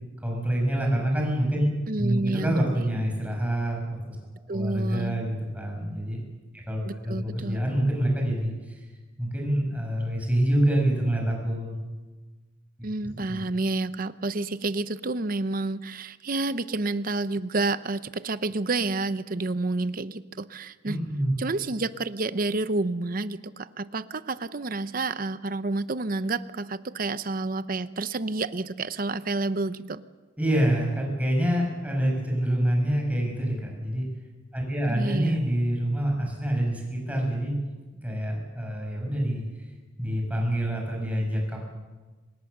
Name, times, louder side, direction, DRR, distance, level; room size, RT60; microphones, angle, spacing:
voice 1, 0.2-1.7 2.0-4.2 4.5-6.2 6.5-8.8 9.2-11.8 13.3-13.4 20.9-21.3 30.4-34.1 34.5-37.5 38.0-39.4 40.0-41.6, right 1 dB, 10° right, 0 dB, 6.5 m, -26 dB
voice 2, 1.9-2.6 4.5-5.2 6.8-7.6 12.8-21.0 21.4-30.0 34.9-35.4, right 2 dB, 45° right, 13 dB, 0.8 m, -29 dB
25.5 x 20.5 x 6.7 m, 1.3 s
head